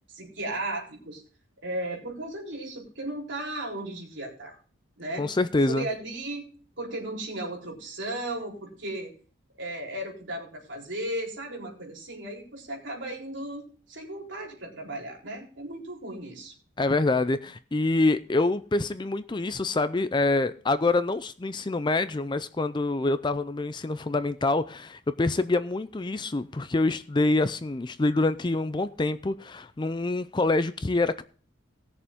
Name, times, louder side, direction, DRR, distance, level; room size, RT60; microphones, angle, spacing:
voice 1, 0.1-1.2 1.6-4.6 5.0-5.3 5.7-6.5 6.8-9.1 9.6-16.5, right 1 dB, 60° right, 3.9 m, -35 dB
voice 2, 5.2-5.9 16.8-31.2, left 2 dB, 20° left, 0.4 m, -26 dB
18.0 x 6.8 x 3.6 m
head